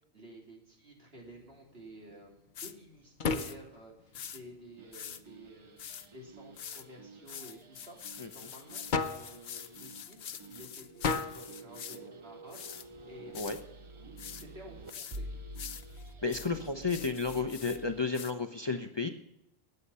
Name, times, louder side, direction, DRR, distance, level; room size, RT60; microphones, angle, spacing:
voice 1, 0.1-5.8 6.1-15.3 18.7-18.9, right 1 dB, 65° right, -1 dB, 3.4 m, -52 dB
sound 1, 1.2-18.1, left 4 dB, 50° left, 1.0 m, -42 dB
sound 2, 2.5-2.7 3.3-3.6 4.1-4.4 4.9-5.2 5.8-6.1 6.6-6.8 7.3-12.0 12.5-12.8 13.3-13.6 14.2-14.4 14.9-15.2 15.5-17.8 18.1-18.3, left 8 dB, 90° left, 1.1 m, -45 dB
sound 3, 4.8-18.0, right 1 dB, 35° right, 0.7 m, -49 dB
voice 2, 16.2-19.1, left 4 dB, 30° left, 6 dB, 0.8 m, -32 dB
20.0 x 7.9 x 5.6 m, 0.84 s
omnidirectional pair, 1.1 m